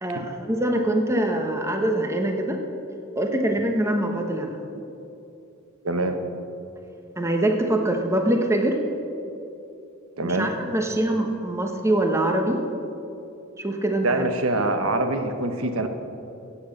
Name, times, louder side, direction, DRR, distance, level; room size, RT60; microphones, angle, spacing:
voice 1, 0.0-2.6 3.1-4.6 7.2-8.8 10.2-12.6 13.6-14.3, right 1 dB, 15° right, 3 dB, 1.1 m, -24 dB
voice 2, 5.8-6.2 10.2-10.5 14.0-15.9, right 2 dB, 80° right, 7 dB, 1.2 m, -24 dB
16.0 x 8.6 x 6.6 m, 2.8 s
head